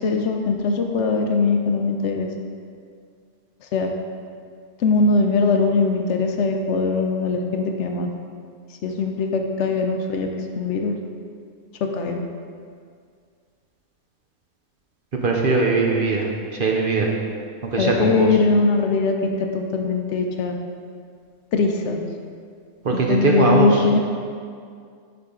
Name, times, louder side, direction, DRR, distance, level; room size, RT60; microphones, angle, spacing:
voice 1, 0.0-2.3 3.7-3.9 4.8-8.1 8.8-10.3 10.6-10.9 11.8-12.2 17.8-20.6 21.5-22.0 23.1-24.0, left 4 dB, 70° left, 4 dB, 0.9 m, -21 dB
voice 2, 15.2-16.3 16.5-17.1 17.6-18.3 22.8-23.8, right 3 dB, 50° right, 0 dB, 0.8 m, -20 dB
7.1 x 5.9 x 3.7 m, 2.2 s
omnidirectional pair, 1.3 m